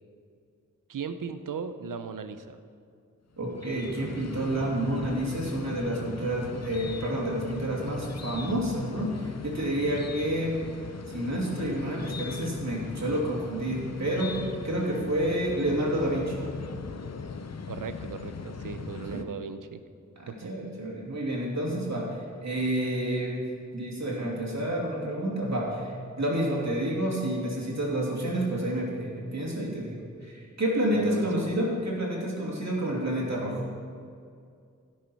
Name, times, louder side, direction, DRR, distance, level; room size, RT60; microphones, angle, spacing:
voice 1, 0.9-2.6 17.7-19.8 20.3-20.7 30.9-31.5, right 6 dB, 90° right, 10 dB, 0.7 m, -37 dB
sound 1, 3.3-19.2, left 5 dB, 55° left, 0.7 m, -39 dB
voice 2, 3.4-10.6 11.1-16.4 19.1-19.2 20.2-23.4 23.7-33.6, right 1 dB, 60° right, -3 dB, 2.9 m, -29 dB
16.5 x 6.5 x 4.6 m, 2.3 s
cardioid pair, 40°, 31 cm